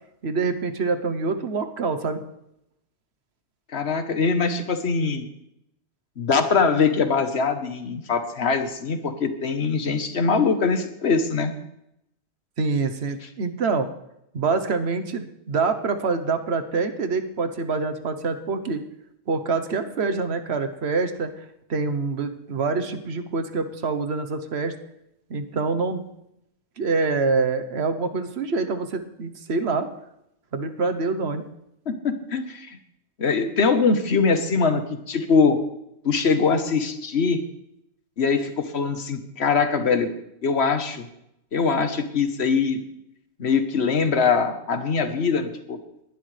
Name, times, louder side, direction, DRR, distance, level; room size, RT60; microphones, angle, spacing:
voice 1, 0.2-2.2 12.6-13.9 14.3-18.8 19.3-21.3 21.7-24.8 25.3-26.1 26.8-29.9 30.5-31.5, right 4 dB, 70° right, 8 dB, 1.3 m, -25 dB
voice 2, 3.7-5.3 6.2-11.5 31.9-32.8 33.2-34.8 35.1-35.6 36.0-37.4 38.2-40.1 40.4-41.1 41.5-42.8 43.4-45.8, left 5 dB, 70° left, 8 dB, 1.5 m, -22 dB
19.5 x 11.5 x 3.3 m, 0.81 s
omnidirectional pair, 1.2 m